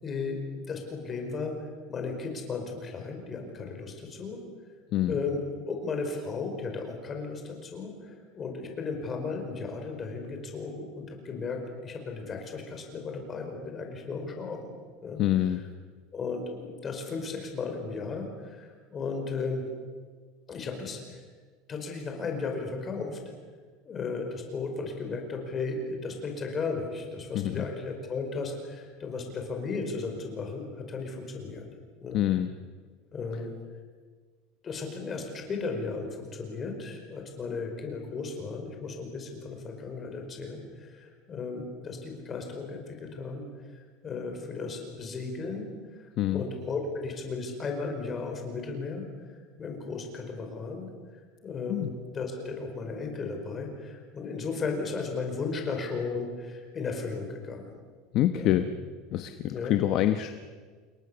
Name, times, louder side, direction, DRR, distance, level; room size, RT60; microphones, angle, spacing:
voice 1, 0.0-0.4 0.7-4.4 5.1-5.4 5.7-14.7 15.0-15.2 16.1-19.6 20.5-21.2 21.7-23.2 23.8-31.6 32.0-32.2 33.1-33.5 34.6-45.7 46.0-49.0 49.6-50.9 51.4-57.7 58.3-58.6 59.3-59.7, left 4 dB, 20° left, 3 dB, 5.0 m, -35 dB
voice 2, 15.2-15.6 27.3-27.6 32.1-32.5 46.2-46.4 51.7-51.9 58.1-58.7 59.1-60.3, left 12 dB, 40° left, 9 dB, 1.0 m, -26 dB
28.5 x 21.5 x 7.0 m, 1.5 s
cardioid pair, 160°, 0 cm